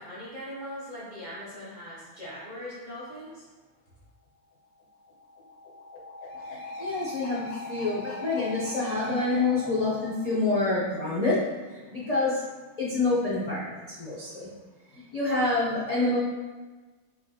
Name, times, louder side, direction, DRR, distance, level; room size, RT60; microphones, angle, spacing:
voice 1, 0.0-3.5, equal, 45° right, -8 dB, 0.6 m, -40 dB
sound 1, 4.7-11.2, left 2 dB, 80° left, 1.2 m, -40 dB
voice 2, 6.5-11.4 11.7-12.4 12.8-14.5 14.9-16.2, left 3 dB, 55° left, -7 dB, 0.4 m, -27 dB
4.4 x 2.4 x 2.7 m, 1.3 s
omnidirectional pair, 1.6 m